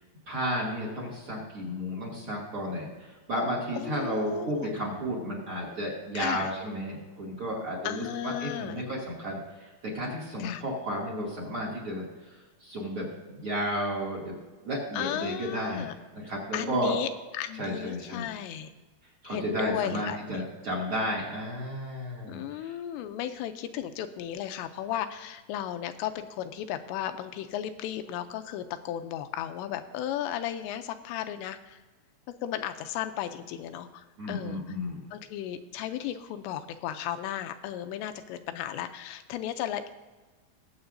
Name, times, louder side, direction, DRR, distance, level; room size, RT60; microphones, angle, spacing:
voice 1, 0.3-12.0 12.6-14.4 14.6-17.0 17.6-18.3 19.2-22.8 34.2-35.0, equal, 35° right, -2 dB, 2.7 m, -33 dB
voice 2, 3.7-4.7 6.1-6.5 7.8-8.8 10.4-10.6 14.9-15.9 16.5-17.1 17.3-18.7 19.2-20.5 22.3-31.8 32.3-34.6 35.1-39.9, left 11 dB, 90° left, 8 dB, 2.9 m, -35 dB
21.0 x 7.9 x 2.7 m, 1.3 s
omnidirectional pair, 5.0 m